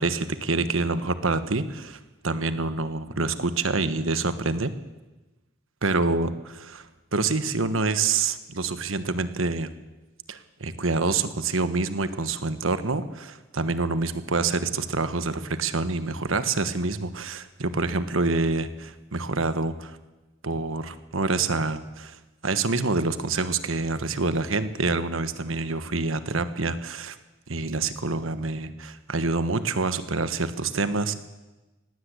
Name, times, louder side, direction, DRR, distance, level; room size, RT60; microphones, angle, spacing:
voice 1, 0.0-4.7 5.8-9.7 10.3-20.0 20.4-27.2 27.5-31.1, right 3 dB, 80° right, 11 dB, 1.3 m, -27 dB
19.0 x 16.5 x 8.3 m, 1.1 s
head